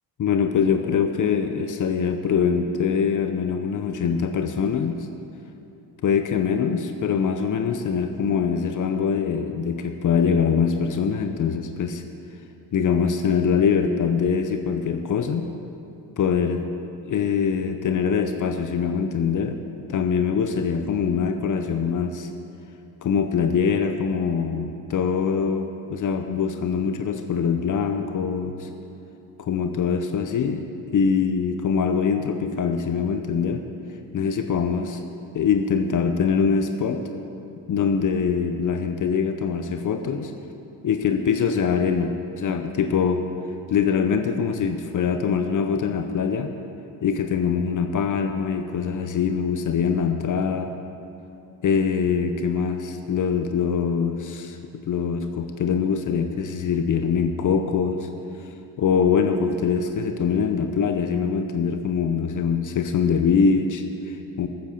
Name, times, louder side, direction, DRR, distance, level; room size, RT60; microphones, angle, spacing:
voice 1, 0.2-5.0 6.0-12.0 12.7-15.5 16.2-16.7 17.0-19.6 19.9-22.3 23.0-28.7 29.4-30.7 30.9-33.6 34.1-35.0 35.3-37.0 37.7-40.3 40.8-43.2 43.7-46.5 47.0-50.7 51.6-54.6 54.8-58.1 58.4-58.5 58.8-64.5, left 6 dB, 50° left, 7 dB, 0.7 m, -23 dB
8.6 x 8.2 x 6.5 m, 2.8 s
cardioid pair, 95°, 41 cm